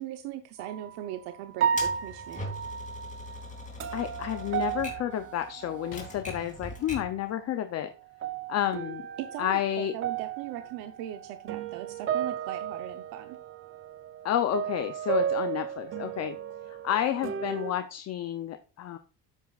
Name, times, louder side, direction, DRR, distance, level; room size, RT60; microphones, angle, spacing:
voice 1, 0.0-2.4 9.2-13.4, right 12 dB, 90° right, 7 dB, 0.9 m, -39 dB
sound 1, 0.6-1.0 1.6-6.4 6.8-7.6 8.0-17.7, right 8 dB, 35° right, 0.6 m, -34 dB
Typewriter, 1.8-7.2, left 2 dB, 20° left, 2.6 m, -41 dB
voice 2, 3.9-7.9 8.5-9.0 9.4-9.9 14.2-16.4 16.7-19.0, left 11 dB, 40° left, 9 dB, 0.6 m, -30 dB
sound 2, 5.9-7.4 8.2-8.4, left 9 dB, 65° left, 1.6 m, -51 dB
11.0 x 8.4 x 2.4 m, 0.35 s
cardioid pair, 145°, 38 cm